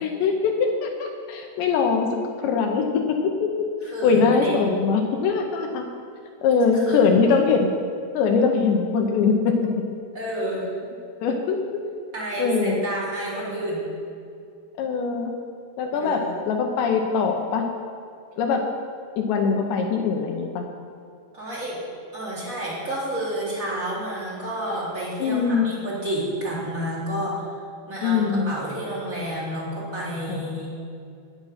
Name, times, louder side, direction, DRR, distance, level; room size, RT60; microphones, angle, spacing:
voice 1, 0.0-2.1 2.4-3.5 4.0-5.8 6.4-7.7 8.1-9.6 11.2-11.6 12.4-12.8 14.8-15.3 15.8-17.6 18.4-18.6 19.2-20.6 25.2-25.7 28.0-28.5 30.3-30.7, left 5 dB, 75° left, 3 dB, 2.8 m, -22 dB
voice 2, 3.8-4.6 6.5-6.6 6.9-7.3 10.1-10.7 12.1-13.9 15.9-16.4 21.3-21.8 22.1-27.4 27.9-30.7, right 1 dB, 20° right, -6 dB, 3.1 m, -30 dB
16.5 x 10.5 x 5.8 m, 2.4 s
omnidirectional pair, 5.7 m